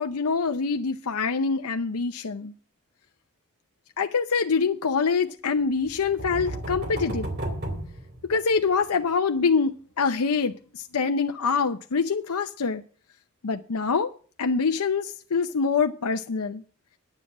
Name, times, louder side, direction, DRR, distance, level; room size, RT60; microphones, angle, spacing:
voice 1, 0.0-2.5 4.0-7.3 8.3-12.8 13.4-14.1 14.4-16.6, left 5 dB, 85° left, 0.7 m, -25 dB
sound 1, 5.8-8.7, right 1 dB, 45° right, 2.9 m, -33 dB
10.0 x 7.3 x 8.3 m
head